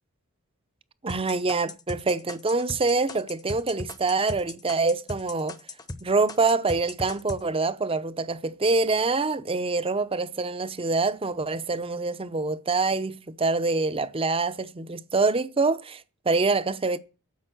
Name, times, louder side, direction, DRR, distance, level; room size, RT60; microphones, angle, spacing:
voice 1, 1.0-5.6 6.0-17.0, right 3 dB, 25° right, 0.6 m, -25 dB
sound 1, 1.1-6.0 6.3-7.4, left 2 dB, 15° left, 0.8 m, -37 dB
10.5 x 7.3 x 7.8 m
head